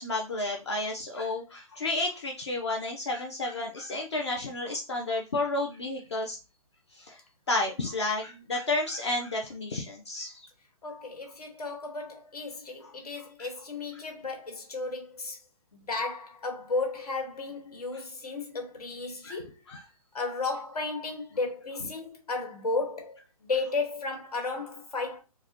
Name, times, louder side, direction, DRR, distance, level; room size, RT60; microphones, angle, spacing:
voice 1, 0.0-6.4 6.9-7.2 7.5-10.5 12.8-12.9 13.4-13.5 13.9-14.0 17.9-18.0 19.2-19.4 19.7-19.8, left 2 dB, 45° left, 0.6 m, -31 dB
voice 2, 10.8-15.4 15.9-19.5 20.1-25.2, left 3 dB, 80° left, 1.6 m, -34 dB
4.6 x 2.2 x 2.9 m
hypercardioid pair, 180°, 19 cm